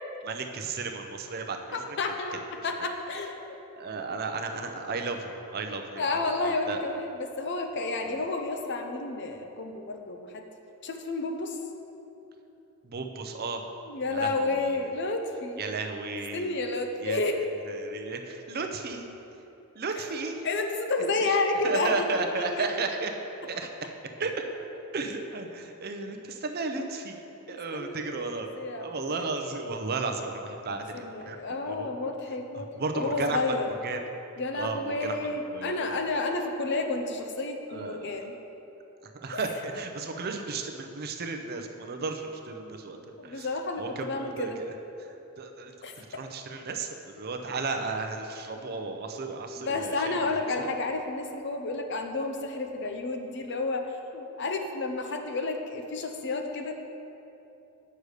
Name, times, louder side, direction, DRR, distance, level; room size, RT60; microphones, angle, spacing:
voice 1, 0.2-1.8 2.3-2.4 3.8-6.8 8.0-8.2 12.8-13.6 14.1-14.9 15.6-16.5 17.0-17.2 17.7-19.1 19.7-20.5 21.2-21.4 21.6-23.1 23.5-24.4 24.9-27.2 27.5-28.5 28.8-31.4 31.7-31.9 32.5-33.4 33.8-34.0 34.5-36.0 37.7-38.3 39.0-43.5 43.8-44.7 45.0-50.7, right 3 dB, 45° right, 5 dB, 0.6 m, -34 dB
voice 2, 1.7-3.6 6.0-10.4 10.8-11.6 13.9-15.6 16.3-17.4 20.4-22.0 22.4-22.7 27.5-28.2 28.6-29.3 30.7-32.7 32.9-33.7 34.4-38.3 39.3-39.4 43.2-44.6 45.8-45.9 49.6-56.8, left 3 dB, 50° left, 4 dB, 0.6 m, -31 dB
7.9 x 6.6 x 4.9 m, 2.9 s
head